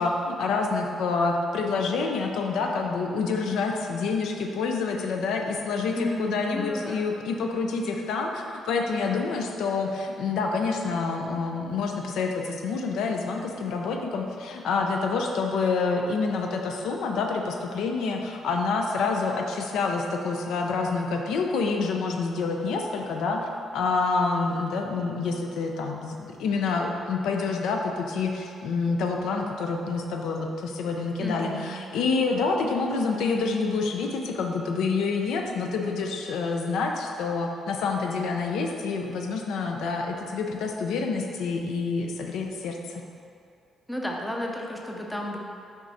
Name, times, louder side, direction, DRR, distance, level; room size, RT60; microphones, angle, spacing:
voice 1, 0.0-43.0, left 4 dB, 80° left, 2 dB, 0.6 m, -27 dB
voice 2, 5.9-7.0 31.2-31.7 43.9-45.4, left 1 dB, 5° left, -1 dB, 0.6 m, -32 dB
6.0 x 5.2 x 4.2 m, 2.5 s
cardioid pair, 170°, 0 cm